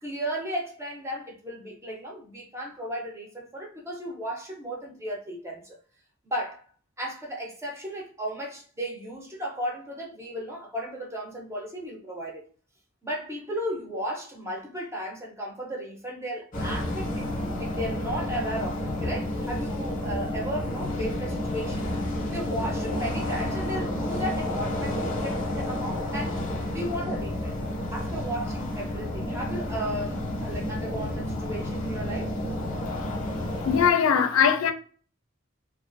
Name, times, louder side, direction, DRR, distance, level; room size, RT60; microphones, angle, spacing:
voice 1, 0.0-5.8 6.2-6.6 7.0-12.4 13.0-17.3 17.6-21.9 22.3-26.4 26.7-27.6 27.9-32.3, equal, 15° right, 0.6 m, -35 dB
sound 1, 16.5-33.9, left 1 dB, 40° left, 0.7 m, -30 dB
voice 2, 33.7-34.7, left 7 dB, 85° left, 0.4 m, -20 dB
2.4 x 2.3 x 2.4 m
head